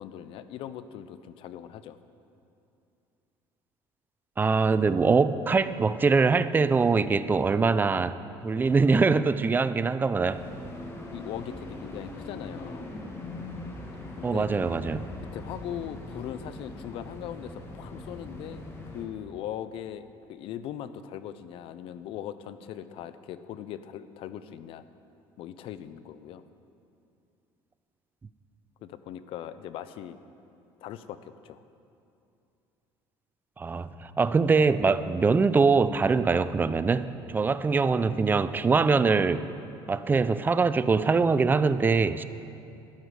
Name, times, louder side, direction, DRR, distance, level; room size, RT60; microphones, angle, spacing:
voice 1, 0.0-2.0 11.1-12.9 14.2-14.5 15.3-18.7 18.9-24.8 25.4-26.4 28.8-30.2 30.8-31.6, left 10 dB, 65° left, 13 dB, 0.6 m, -40 dB
voice 2, 4.4-10.4 14.2-15.1 33.6-39.5 39.9-42.2, right 4 dB, 20° right, 14 dB, 0.4 m, -23 dB
sound 1, 10.3-19.0, left 2 dB, 25° left, 1.7 m, -41 dB
12.5 x 11.0 x 4.8 m, 2.7 s
cardioid pair, 115°, 10 cm